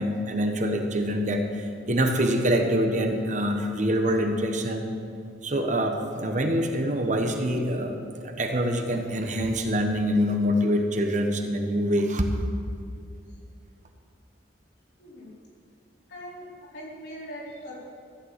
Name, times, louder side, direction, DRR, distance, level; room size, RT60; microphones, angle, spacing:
voice 1, 0.0-4.9 5.4-12.3, equal, 40° right, 4 dB, 1.1 m, -25 dB
voice 2, 15.0-15.3 16.1-17.8, equal, 65° left, -6 dB, 4.3 m, -41 dB
14.5 x 6.8 x 8.9 m, 2.3 s
head